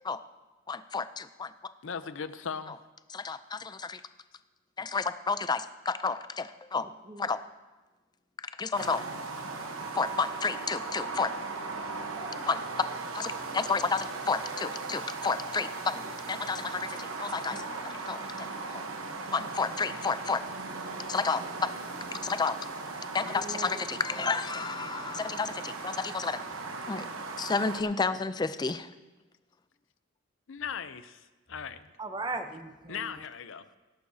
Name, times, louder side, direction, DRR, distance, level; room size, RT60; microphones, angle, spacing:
voice 1, 0.7-1.5 2.7-2.8 3.1-4.0 4.8-6.9 7.2-7.4 8.6-9.1 9.9-11.3 12.4-12.6 13.1-16.0 16.3-17.6 18.1-18.8 19.3-20.4 21.1-21.4 22.1-22.6 23.1-26.4 26.9-27.1 27.4-28.9, left 4 dB, 20° left, 12 dB, 0.4 m, -31 dB
voice 2, 1.8-2.8 30.5-31.9 32.9-33.6, left 6 dB, 65° left, 12 dB, 0.6 m, -38 dB
voice 3, 6.8-7.3 12.2-12.3 13.4-13.9 17.5-17.6 23.2-23.7 24.2-24.4 28.1-28.2 32.0-33.2, right 2 dB, 20° right, 7 dB, 0.7 m, -40 dB
sound 1, 8.7-27.8, right 3 dB, 85° right, 1.1 m, -38 dB
18.0 x 11.0 x 2.8 m, 1.2 s
head